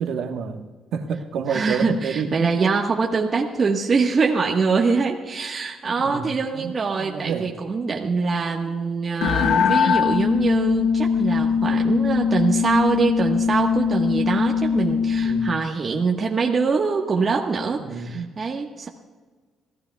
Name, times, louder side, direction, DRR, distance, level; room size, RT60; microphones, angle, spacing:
voice 1, 0.0-2.8 6.0-7.5 15.2-15.5 17.8-18.3, right 6 dB, 80° right, 5 dB, 1.2 m, -29 dB
voice 2, 1.5-18.9, right 4 dB, 40° right, 0 dB, 1.3 m, -24 dB
sound 1, 9.2-15.6, left 6 dB, 80° left, 0.7 m, -21 dB
28.0 x 15.5 x 2.3 m, 1.4 s
cardioid pair, 90°, 0 cm